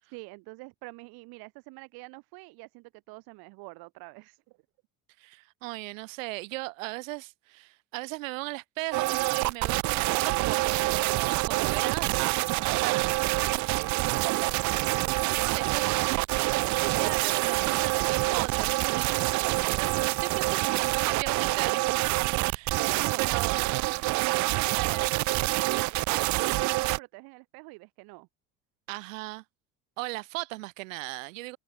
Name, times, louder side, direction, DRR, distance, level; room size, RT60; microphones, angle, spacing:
voice 1, 0.1-4.6 11.6-12.1 12.8-16.2 22.8-28.3, right 27 dB, 70° right, 3.6 m, -46 dB
voice 2, 5.2-13.2 15.5-15.9 17.0-22.8 23.2-23.6 24.5-25.1 28.9-29.4 30.0-31.6, right 23 dB, 85° right, 0.7 m, -37 dB
sound 1, 8.9-27.0, right 20 dB, 50° right, 0.5 m, -26 dB
supercardioid pair, 85°, 38 cm